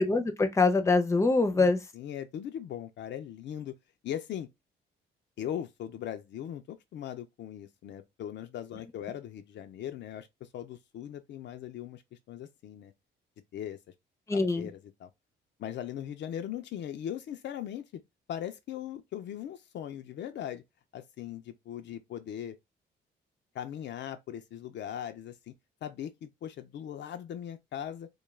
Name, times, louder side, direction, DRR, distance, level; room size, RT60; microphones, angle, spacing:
voice 1, 0.0-1.8 14.3-14.7, left 3 dB, 15° left, 0.5 m, -24 dB
voice 2, 1.5-3.7 4.0-4.5 5.4-12.0 12.3-12.9 13.5-13.8 14.3-15.1 15.6-17.8 18.3-20.6 20.9-22.6 23.5-25.5 25.8-28.1, left 10 dB, 65° left, 0.4 m, -39 dB
2.2 x 2.2 x 3.1 m
cardioid pair, 90°, 20 cm